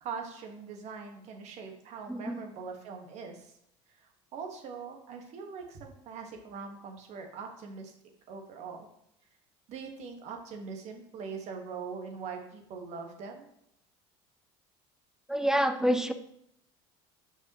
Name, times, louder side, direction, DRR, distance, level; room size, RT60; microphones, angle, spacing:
voice 1, 0.0-3.5 4.3-7.9 8.3-8.9 9.7-13.5, right 5 dB, 55° right, 3 dB, 1.5 m, -42 dB
voice 2, 2.1-2.4 15.3-16.1, equal, 5° right, 9 dB, 0.6 m, -27 dB
7.9 x 6.1 x 3.0 m, 0.73 s
supercardioid pair, 90°, 13 cm